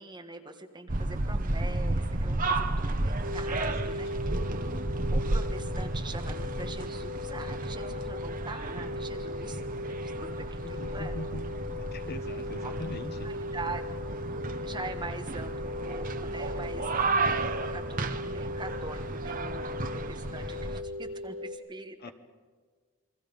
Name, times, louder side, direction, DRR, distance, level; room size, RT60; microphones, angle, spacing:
voice 1, 0.0-4.3 5.1-9.6 10.0-11.2 12.6-12.7 13.2-13.8 14.6-22.1, right 3 dB, 20° right, 5 dB, 1.4 m, -43 dB
sound 1, 0.9-20.8, right 2 dB, 35° right, 1.0 m, -33 dB
sound 2, 3.2-21.5, left 2 dB, 80° right, 3.9 m, -38 dB
voice 2, 10.6-11.4 11.9-13.3 22.0-22.1, left 1 dB, 45° left, 8 dB, 1.2 m, -41 dB
28.5 x 23.0 x 5.4 m, 1.5 s
head